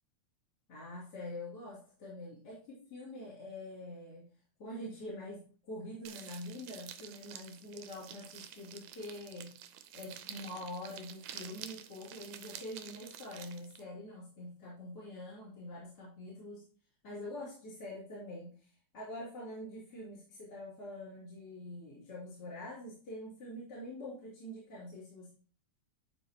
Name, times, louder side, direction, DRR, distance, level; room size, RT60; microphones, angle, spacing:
voice 1, 0.7-4.3 4.6-9.5 9.9-16.7 17.0-25.3, left 1 dB, 35° left, -8 dB, 2.9 m, -45 dB
sound 1, 6.1-13.8, right 10 dB, 85° right, 2.0 m, -49 dB
11.5 x 4.2 x 2.8 m, 0.41 s
omnidirectional pair, 3.3 m